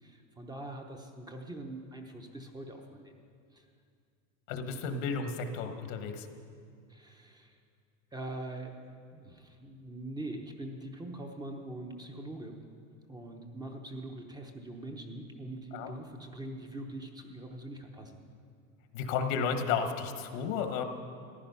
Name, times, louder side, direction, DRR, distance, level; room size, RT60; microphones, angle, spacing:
voice 1, 0.0-3.1 3.5-3.7 6.9-7.6 8.1-12.6 13.1-18.2, right 1 dB, 10° right, 3 dB, 0.8 m, -43 dB
voice 2, 4.5-6.2 15.7-15.9 18.9-20.8, left 6 dB, 75° left, 7 dB, 1.4 m, -32 dB
15.0 x 10.5 x 5.5 m, 2.3 s
supercardioid pair, 145°, 39 cm